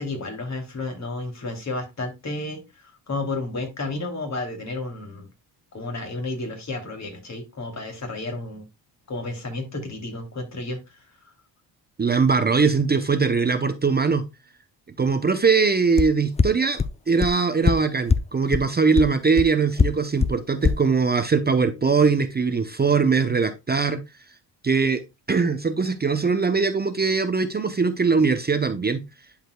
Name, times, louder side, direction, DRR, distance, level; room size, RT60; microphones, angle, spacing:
voice 1, 0.0-5.3 5.7-8.6 9.1-11.1, left 2 dB, 40° left, 2.9 m, -32 dB
voice 2, 12.0-14.2 15.0-16.8 17.1-24.0 24.6-25.0 25.3-29.0, right 5 dB, 20° right, 0.7 m, -21 dB
sound 1, 16.0-16.1 16.4-16.5 16.8-16.9 17.2-17.3 17.7-17.8 18.1-18.2 18.5-18.6 19.0-19.1 19.4-19.5 19.8-19.9 20.2-20.3 20.6-20.7, left 5 dB, 15° left, 0.4 m, -18 dB
11.0 x 5.0 x 2.3 m
cardioid pair, 95°, 44 cm